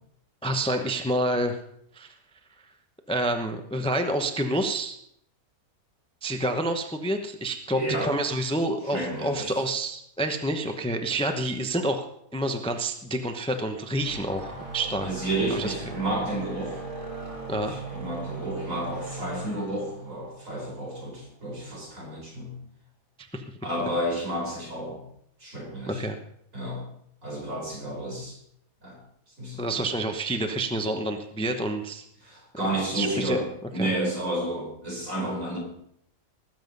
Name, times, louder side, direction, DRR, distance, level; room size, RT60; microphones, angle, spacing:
voice 1, 0.4-1.6 1.9-2.1 3.1-5.0 6.2-12.1 12.3-15.1 15.5-15.9 17.5-17.7 23.3-23.4 25.9-26.2 29.6-32.0 32.9-33.4 33.8-33.9, right 1 dB, 5° left, 6 dB, 0.7 m, -28 dB
voice 2, 7.7-8.1 8.8-9.6 15.0-16.8 17.6-22.5 23.6-25.0 25.4-26.0 26.5-26.8 27.2-28.4 28.8-29.0 29.4-29.8 32.2-35.6, right 1 dB, 60° right, -2 dB, 5.1 m, -31 dB
sound 1, 13.8-21.2, right 3 dB, 20° right, 1.9 m, -39 dB
19.5 x 7.6 x 5.4 m, 0.74 s
omnidirectional pair, 1.5 m